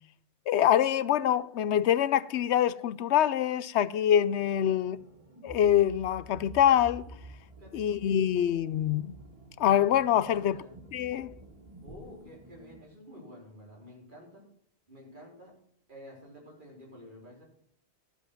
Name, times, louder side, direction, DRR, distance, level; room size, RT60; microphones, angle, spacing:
voice 1, 0.5-5.0 5.4-7.0 7.7-9.2 9.6-10.6 10.9-11.3, left 10 dB, 80° left, 0.9 m, -25 dB
sound 1, 4.3-12.8, right 2 dB, 30° right, 1.7 m, -50 dB
voice 2, 7.6-8.0 10.3-10.8 11.8-14.4 14.9-15.5 15.9-17.4, equal, 50° right, 4.4 m, -50 dB
12.5 x 7.3 x 6.0 m
omnidirectional pair, 1.1 m